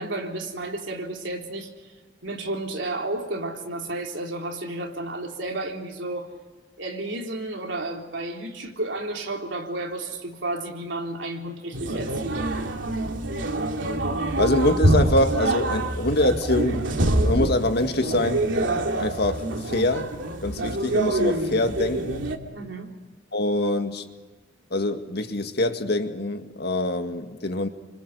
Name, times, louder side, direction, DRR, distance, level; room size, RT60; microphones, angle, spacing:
voice 1, 0.0-1.7 2.2-6.3 6.8-12.4 22.5-22.9, right 2 dB, 70° right, 3.9 m, -32 dB
sound 1, 11.7-22.4, right 1 dB, 85° right, 2.7 m, -25 dB
voice 2, 14.4-16.9 17.2-18.5 19.0-20.1 20.4-22.2 23.3-24.1 24.7-27.7, left 1 dB, 60° left, 2.0 m, -24 dB
29.5 x 25.5 x 6.9 m
head